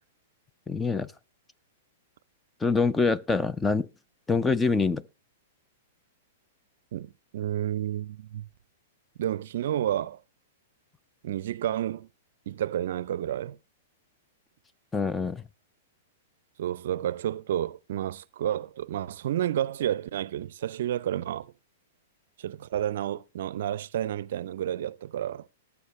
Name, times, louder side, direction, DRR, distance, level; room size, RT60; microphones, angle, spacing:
voice 1, 0.7-1.1 2.6-3.9 4.3-5.0 14.9-15.4, left 4 dB, 10° left, 0.5 m, -25 dB
voice 2, 6.9-8.5 9.2-10.2 11.2-12.1 12.5-13.6 16.6-21.5 22.4-25.5, right 11 dB, 65° right, 0.5 m, -30 dB
19.0 x 7.1 x 3.1 m
hypercardioid pair, 115°, 0 cm